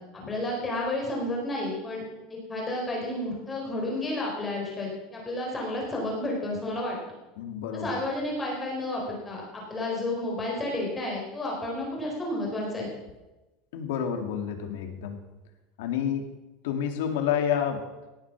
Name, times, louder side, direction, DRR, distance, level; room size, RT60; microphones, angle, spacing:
voice 1, 0.3-2.0 2.3-7.0 7.8-12.9, left 1 dB, 10° left, -2 dB, 4.1 m, -31 dB
voice 2, 7.4-8.0 13.7-15.2 15.8-16.4 16.6-17.9, left 8 dB, 75° left, 5 dB, 2.2 m, -29 dB
17.5 x 8.3 x 6.0 m, 1.1 s
supercardioid pair, 170°, 0 cm